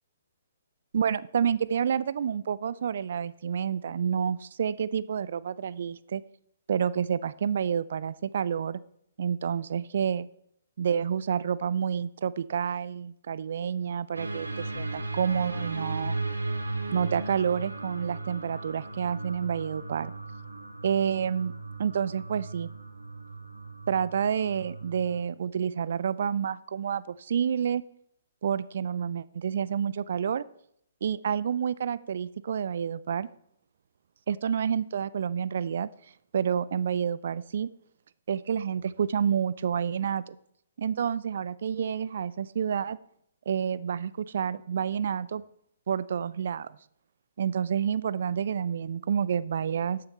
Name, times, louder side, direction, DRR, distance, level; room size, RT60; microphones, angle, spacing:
voice 1, 0.9-6.2 6.7-8.8 9.2-10.3 10.8-16.2 16.9-20.1 20.8-21.5 21.8-22.7 23.9-27.8 28.4-30.4 31.0-33.3 34.3-35.9 36.3-37.7 38.3-40.4 40.8-43.0 43.5-45.4 45.9-46.7 47.4-50.0, right 7 dB, 55° right, 18 dB, 0.3 m, -29 dB
sound 1, 14.1-25.2, right 2 dB, 85° right, 1.4 m, -37 dB
13.0 x 6.5 x 4.2 m, 0.71 s
figure-of-eight pair, 125°, 0 cm